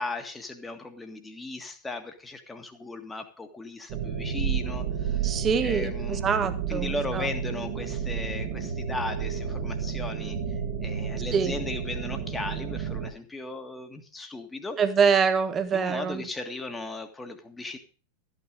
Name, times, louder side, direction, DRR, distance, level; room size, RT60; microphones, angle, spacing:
voice 1, 0.0-5.3 5.6-6.3 6.7-14.8 15.7-17.8, left 2 dB, 10° left, 5 dB, 1.8 m, -37 dB
sound 1, 3.9-13.1, right 7 dB, 45° right, 2.3 m, -31 dB
voice 2, 5.2-7.2 11.3-11.5 14.8-16.2, right 6 dB, 25° right, 10 dB, 1.3 m, -25 dB
13.5 x 9.1 x 5.1 m, 0.37 s
figure-of-eight pair, 90°, 0 cm